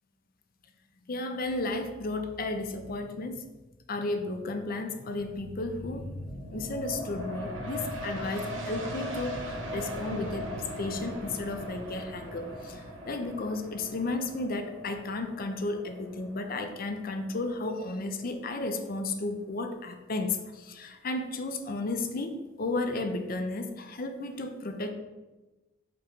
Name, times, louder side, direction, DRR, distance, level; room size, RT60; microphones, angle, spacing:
voice 1, 1.1-3.4 3.9-24.9, left 2 dB, 45° left, 7 dB, 0.6 m, -33 dB
sound 1, 5.2-18.4 18.8-18.9, equal, 70° right, 1.1 m, -39 dB
5.9 x 3.1 x 5.1 m, 1.1 s
head